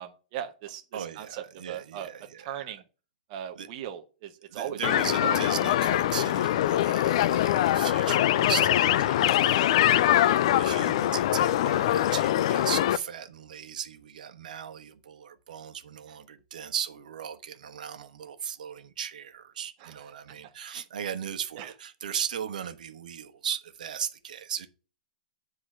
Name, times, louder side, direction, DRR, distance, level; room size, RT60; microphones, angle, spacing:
voice 1, 0.0-2.1 2.4-2.8 3.3-4.8 5.2-5.4 19.8-19.9 21.6-21.7, right 10 dB, 30° right, 0.8 m, -38 dB
voice 2, 0.9-2.7 3.5-3.7 4.5-10.3 10.6-24.7, right 8 dB, 75° right, 1.2 m, -37 dB
sound 1, 4.8-13.0, left 13 dB, 45° left, 0.3 m, -23 dB
7.9 x 3.9 x 6.2 m
hypercardioid pair, 165°, 4 cm